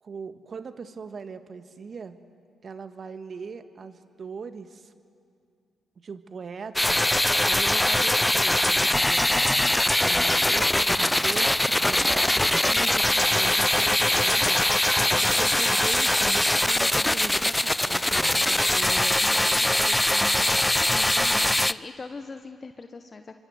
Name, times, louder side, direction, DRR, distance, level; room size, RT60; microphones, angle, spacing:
voice 1, 0.0-2.2 2.6-4.9 6.0-7.1 7.4-14.9 15.2-20.5, right 5 dB, 50° right, 9 dB, 1.7 m, -40 dB
sound 1, 6.8-21.7, left 1 dB, 10° left, 0.7 m, -22 dB
voice 2, 15.0-15.5 20.8-23.3, left 4 dB, 40° left, 7 dB, 1.3 m, -42 dB
28.0 x 25.0 x 8.0 m, 2.3 s
hypercardioid pair, 40°, 0 cm